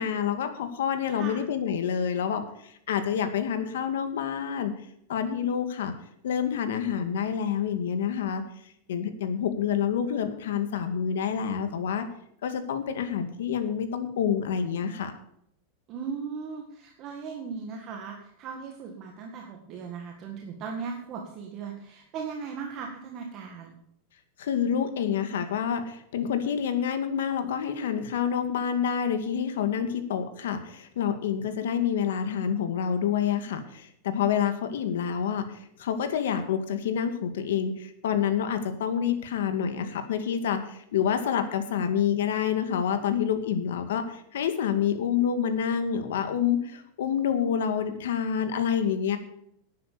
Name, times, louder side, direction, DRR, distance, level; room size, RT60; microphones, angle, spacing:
voice 1, 0.0-4.7 5.1-5.9 6.2-8.4 8.9-12.1 12.4-15.1 24.4-49.2, left 8 dB, 85° left, 8 dB, 2.1 m, -28 dB
voice 2, 1.1-1.4 15.9-23.8, right 5 dB, 30° right, 2 dB, 1.7 m, -38 dB
11.5 x 9.4 x 6.8 m, 0.72 s
supercardioid pair, 165°, 0 cm